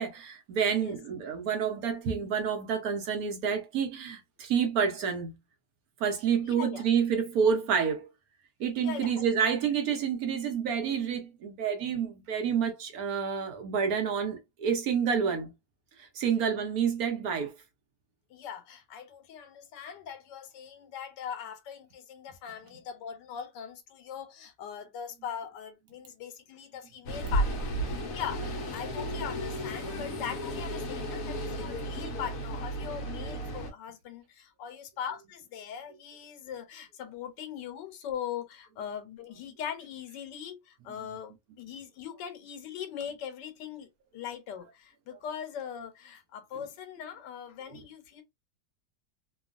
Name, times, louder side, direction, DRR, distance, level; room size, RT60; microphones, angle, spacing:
voice 1, 0.0-5.3 6.0-8.1 8.6-15.5 16.0-17.5, right 7 dB, 65° right, 1.0 m, -29 dB
voice 2, 6.4-6.9 8.8-9.4 18.3-48.2, left 8 dB, 90° left, 1.3 m, -41 dB
sound 1, 27.1-33.7, equal, 65° left, 0.9 m, -33 dB
2.9 x 2.3 x 2.4 m
omnidirectional pair, 1.9 m